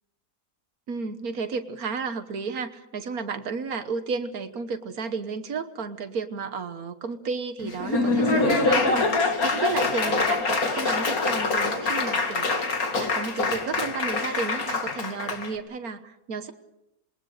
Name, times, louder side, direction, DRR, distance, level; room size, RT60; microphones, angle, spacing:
voice 1, 0.9-12.5 12.9-16.5, right 5 dB, 80° right, 8 dB, 1.7 m, -32 dB
Laughter / Applause, 7.6-15.5, left 3 dB, 80° left, 2.7 m, -25 dB
27.0 x 21.5 x 6.6 m, 0.89 s
omnidirectional pair, 1.5 m